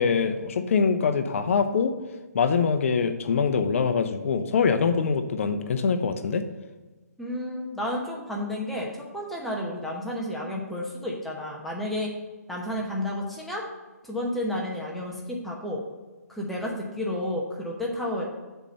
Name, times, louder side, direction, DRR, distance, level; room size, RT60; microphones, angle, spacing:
voice 1, 0.0-1.9 2.3-6.4, left 5 dB, 50° left, 9 dB, 0.7 m, -24 dB
voice 2, 7.2-12.1 12.5-13.6 14.0-15.8 16.3-18.2, left 1 dB, ahead, -3 dB, 0.9 m, -31 dB
7.0 x 4.4 x 5.5 m, 1.2 s
figure-of-eight pair, 145°, 9 cm